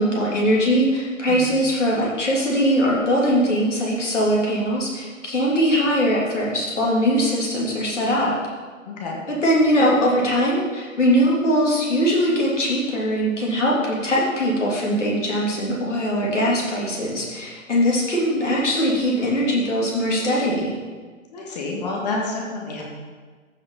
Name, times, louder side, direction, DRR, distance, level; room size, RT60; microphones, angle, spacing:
voice 1, 0.0-8.3 9.3-20.7, equal, 60° left, -4 dB, 3.3 m, -21 dB
voice 2, 8.9-9.2 21.3-22.8, left 3 dB, 30° left, -2 dB, 1.9 m, -29 dB
14.0 x 5.6 x 4.0 m, 1.4 s
figure-of-eight pair, 130°, 40 cm